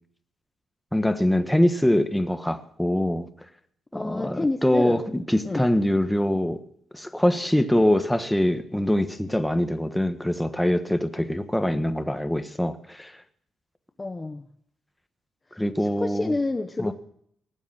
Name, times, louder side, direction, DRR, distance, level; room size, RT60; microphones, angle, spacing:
voice 1, 0.9-3.3 3.9-6.6 6.9-13.1 15.6-16.3 16.8-16.9, left 1 dB, 5° left, 1.4 m, -23 dB
voice 2, 3.9-5.0 5.4-5.6 14.0-14.5 15.5-16.9, left 2 dB, 20° left, 1.0 m, -29 dB
18.5 x 7.3 x 8.8 m
cardioid pair, 95°, 0 cm